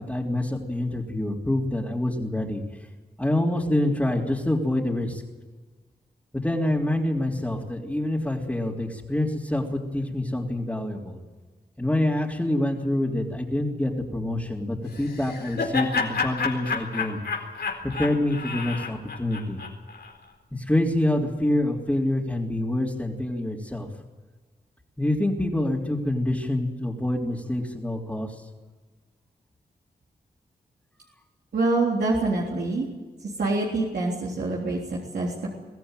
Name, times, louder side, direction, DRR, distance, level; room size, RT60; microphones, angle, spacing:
voice 1, 0.0-2.6 3.2-5.2 6.3-11.2 11.8-17.2 18.0-19.6 20.5-23.9 25.0-28.4 31.0-31.1, left 1 dB, 10° left, -5 dB, 3.4 m, -26 dB
Laughter, 14.9-20.1, left 5 dB, 75° left, 4.3 m, -30 dB
voice 2, 31.5-32.9 33.4-35.5, right 2 dB, 80° right, -3 dB, 3.6 m, -25 dB
23.0 x 15.0 x 9.2 m, 1.3 s
cardioid pair, 65°, 17 cm